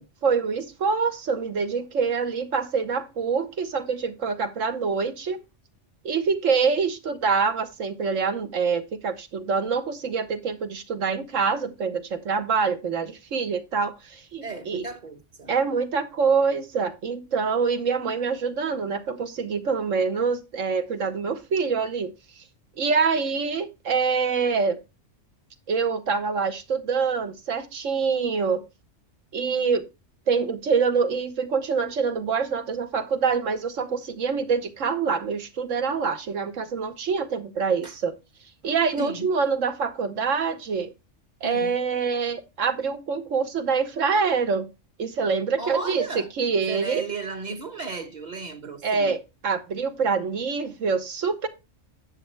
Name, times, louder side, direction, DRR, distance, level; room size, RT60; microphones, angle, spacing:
voice 1, 0.2-5.4 6.0-14.8 15.5-22.1 22.8-24.8 25.7-28.6 29.3-29.9 30.3-38.1 38.6-40.9 41.4-44.7 45.0-47.0 48.8-49.2 49.4-51.5, right 5 dB, 85° right, 1.5 m, -25 dB
voice 2, 14.4-15.5 37.8-37.9 39.0-39.3 41.4-41.8 45.6-46.3 46.7-49.2, right 4 dB, 40° right, 1.1 m, -34 dB
10.5 x 7.6 x 3.3 m
omnidirectional pair, 1.3 m